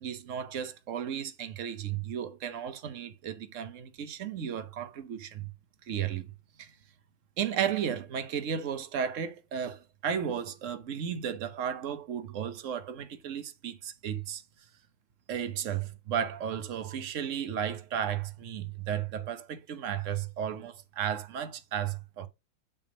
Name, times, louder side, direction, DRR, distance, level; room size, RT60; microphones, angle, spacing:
voice 1, 0.0-5.5 5.9-6.3 6.6-6.7 7.4-14.4 15.3-22.3, right 8 dB, 55° right, 1.0 m, -34 dB
9.1 x 3.6 x 5.0 m
omnidirectional pair, 2.1 m